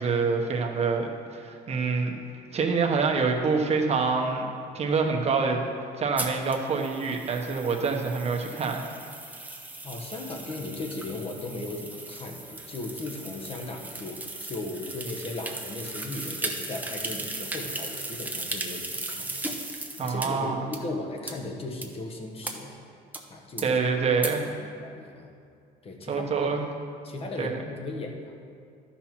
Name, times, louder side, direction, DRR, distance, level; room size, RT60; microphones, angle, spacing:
voice 1, 0.0-2.2 2.5-4.5 4.7-5.6 6.0-8.8 20.0-20.7 23.6-24.5 26.1-26.6 27.4-27.6, right 4 dB, 40° right, 2 dB, 1.1 m, -26 dB
sound 1, 6.2-20.3 20.7-20.8 21.3-21.4 21.8-21.9 22.4-22.5 23.1-23.2 23.6-23.7 24.2-24.3, right 2 dB, 10° right, 0.9 m, -37 dB
voice 2, 9.8-19.4 20.0-22.8 23.3-23.7 24.6-25.3 25.8-26.5 27.0-28.3, left 2 dB, 35° left, 1 dB, 1.3 m, -37 dB
12.0 x 5.8 x 4.5 m, 2.3 s
cardioid pair, 110°, 17 cm